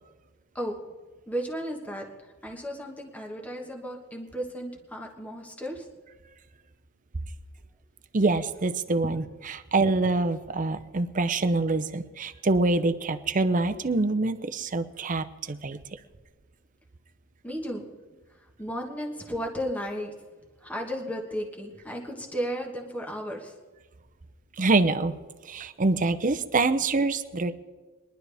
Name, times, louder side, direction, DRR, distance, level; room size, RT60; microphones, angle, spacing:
voice 1, 1.3-5.9 9.0-9.1 17.4-17.9 18.4-20.1 20.6-23.5, equal, 5° left, 0 dB, 1.4 m, -34 dB
voice 2, 8.1-15.8 24.6-25.2 25.4-27.5, right 3 dB, 40° right, 9 dB, 0.7 m, -25 dB
22.0 x 11.5 x 3.5 m, 1.3 s
head